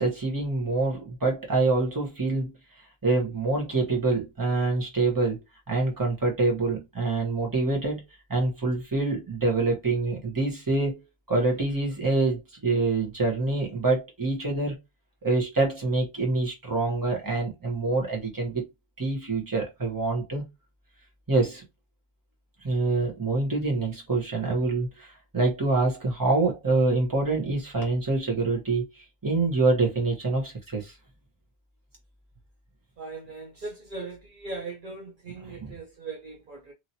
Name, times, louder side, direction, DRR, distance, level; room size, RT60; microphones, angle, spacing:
voice 1, 0.0-2.5 3.0-5.4 5.7-8.0 8.3-14.8 15.2-18.6 19.0-20.4 21.3-21.6 22.6-28.8 29.2-30.9 35.4-35.7, right 3 dB, 20° right, 1.1 m, -26 dB
voice 2, 33.0-36.7, right 3 dB, 55° right, 0.8 m, -39 dB
2.9 x 2.8 x 2.7 m
omnidirectional pair, 1.1 m